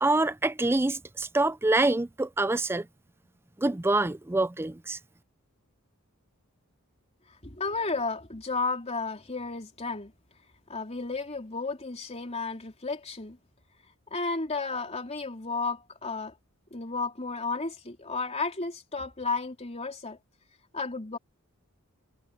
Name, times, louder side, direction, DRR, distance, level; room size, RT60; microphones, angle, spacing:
voice 1, 0.0-2.9 3.6-5.0, right 2 dB, 10° right, 0.4 m, -26 dB
voice 2, 7.4-10.1 10.7-13.4 14.1-16.4 16.7-20.2 20.7-21.2, left 4 dB, 30° left, 3.6 m, -33 dB
head